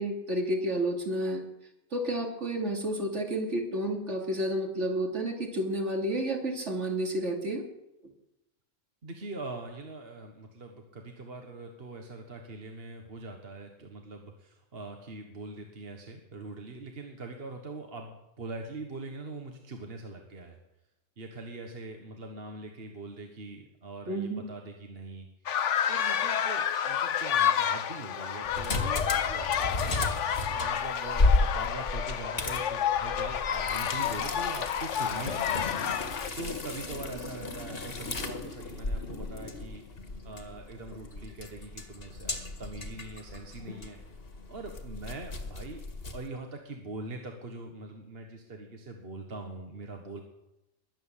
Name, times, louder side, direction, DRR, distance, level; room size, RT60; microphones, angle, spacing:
voice 1, 0.0-1.4 1.9-7.6 24.1-24.4, right 1 dB, 65° right, 2 dB, 2.9 m, -30 dB
voice 2, 9.0-20.6 21.2-25.3 25.9-30.1 30.5-35.8 36.3-44.0 44.5-45.8 46.1-50.2, right 2 dB, 50° right, 3 dB, 1.7 m, -42 dB
sound 1, 25.5-36.3, left 9 dB, 65° left, 1.1 m, -30 dB
sound 2, 28.4-46.3, left 2 dB, 50° left, 1.9 m, -34 dB
22.0 x 8.5 x 7.4 m, 0.91 s
omnidirectional pair, 1.3 m